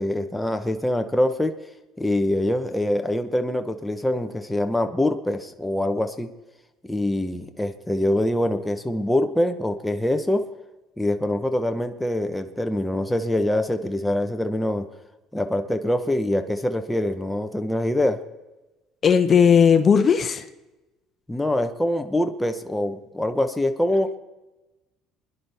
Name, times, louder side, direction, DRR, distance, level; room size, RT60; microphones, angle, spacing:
voice 1, 0.0-1.5 2.0-6.3 6.8-10.5 11.0-14.9 15.3-18.2 21.3-24.1, left 1 dB, 5° left, 6 dB, 0.9 m, -24 dB
voice 2, 19.0-20.5, left 7 dB, 35° left, 9 dB, 0.9 m, -16 dB
28.5 x 10.5 x 3.5 m, 1.1 s
cardioid pair, 105°, 0 cm